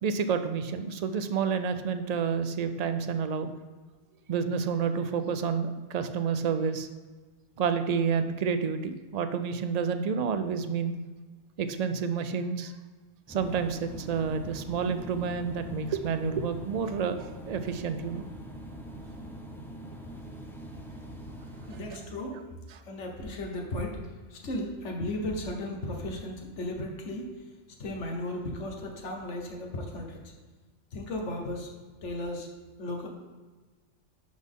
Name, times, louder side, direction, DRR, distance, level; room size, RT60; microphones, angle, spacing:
voice 1, 0.0-3.5 4.3-6.9 7.6-10.9 11.6-12.7 13.3-18.2 21.7-21.8, right 6 dB, 60° right, 9 dB, 0.4 m, -29 dB
sound 1, 13.3-21.9, right 1 dB, ahead, 0.6 m, -43 dB
voice 2, 21.7-22.4 22.8-27.3 27.8-30.3 30.9-31.7 32.0-32.5 32.8-33.1, left 1 dB, 80° left, 2 dB, 1.4 m, -35 dB
11.0 x 4.1 x 3.6 m, 1.3 s
omnidirectional pair, 1.2 m